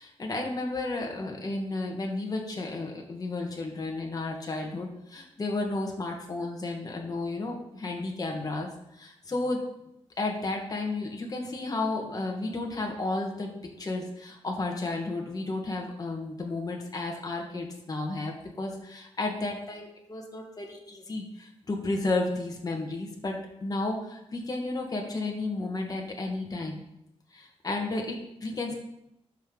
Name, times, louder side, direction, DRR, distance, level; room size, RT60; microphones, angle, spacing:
voice 1, 0.0-9.6 10.2-13.5 13.8-26.8 27.3-28.7, left 2 dB, 35° left, 0 dB, 1.5 m, -32 dB
12.0 x 5.1 x 3.9 m, 0.82 s
wide cardioid pair, 145°, 11 cm